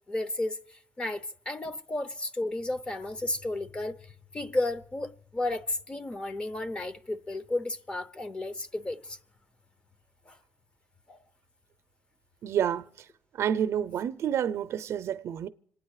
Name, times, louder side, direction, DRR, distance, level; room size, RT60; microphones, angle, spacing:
voice 1, 0.1-9.2 10.3-10.4 11.1-11.2, left 2 dB, 20° left, 0.6 m, -33 dB
voice 2, 12.4-13.1 13.3-15.5, right 9 dB, 65° right, 0.5 m, -29 dB
27.0 x 9.4 x 4.8 m
wide cardioid pair, 170°, 5 cm